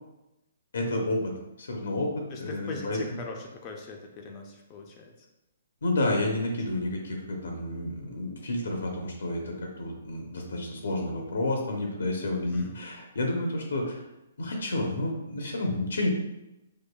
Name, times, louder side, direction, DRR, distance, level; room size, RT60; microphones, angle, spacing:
voice 1, 0.7-1.3 1.6-3.2 5.8-14.0 14.4-16.1, left 1 dB, 85° left, 1 dB, 0.7 m, -30 dB
voice 2, 2.3-5.1 12.5-12.8, left 4 dB, 25° left, 2 dB, 0.4 m, -40 dB
5.0 x 2.2 x 2.2 m, 0.93 s
hypercardioid pair, 165°, 0 cm